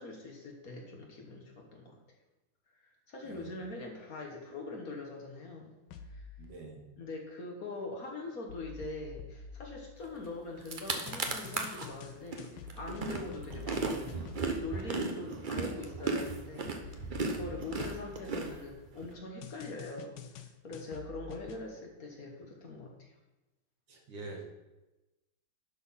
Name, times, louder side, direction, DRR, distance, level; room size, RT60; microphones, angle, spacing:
voice 1, 0.0-2.0 2.8-5.7 6.0-6.3 7.0-23.1, left 2 dB, 50° left, 1 dB, 1.7 m, -43 dB
voice 2, 3.2-3.6 6.4-6.9 23.9-24.4, right 3 dB, 70° right, 0 dB, 2.3 m, -45 dB
sound 1, 5.9-6.4 8.5-10.4 11.1-14.8 16.8-18.7 19.4-21.6, left 5 dB, 85° left, 1.6 m, -48 dB
sound 2, 10.3-10.4 10.6-11.9 12.3-19.1, right 4 dB, 45° right, 0.6 m, -35 dB
11.5 x 4.3 x 5.6 m, 1.0 s
omnidirectional pair, 2.2 m